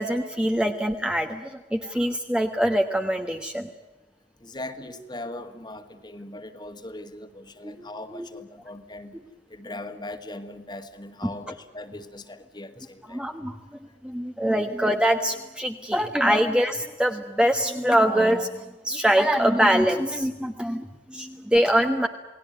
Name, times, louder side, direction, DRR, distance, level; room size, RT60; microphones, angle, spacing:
voice 1, 0.0-3.7 7.6-8.3 11.2-11.3 13.1-13.6 14.0-22.1, equal, 5° right, 4 dB, 1.2 m, -24 dB
voice 2, 4.4-9.1 9.5-13.2, left 2 dB, 25° left, 8 dB, 2.0 m, -39 dB
29.0 x 19.0 x 9.3 m, 1.1 s
head